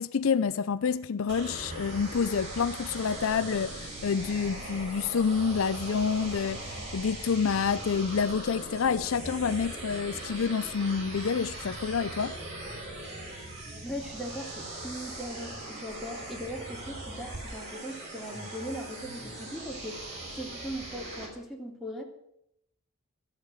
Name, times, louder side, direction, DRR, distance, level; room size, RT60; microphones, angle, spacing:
voice 1, 0.0-12.3, left 6 dB, 70° left, 0.5 m, -28 dB
sound 1, 1.3-21.3, right 1 dB, 55° right, 5.0 m, -40 dB
voice 2, 13.8-20.0 20.3-22.0, equal, ahead, 2.5 m, -39 dB
13.0 x 8.3 x 8.9 m
head